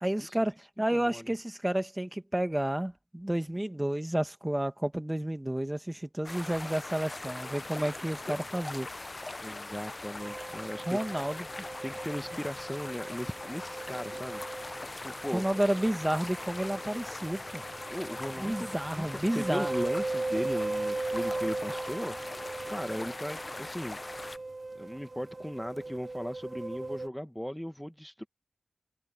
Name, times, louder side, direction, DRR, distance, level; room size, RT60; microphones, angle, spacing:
voice 1, 0.0-8.9 10.9-11.4 15.3-17.6 18.4-19.7, right 1 dB, 15° right, 1.7 m, -31 dB
voice 2, 0.9-1.3 9.4-11.3 11.8-14.4 15.0-15.4 17.9-22.1 22.7-24.0 24.8-28.3, equal, 5° left, 1.2 m, -37 dB
sound 1, 6.2-24.4, left 2 dB, 40° left, 0.5 m, -41 dB
sound 2, 10.2-27.1, right 2 dB, 45° right, 0.3 m, -38 dB
cardioid pair, 45°, 0 cm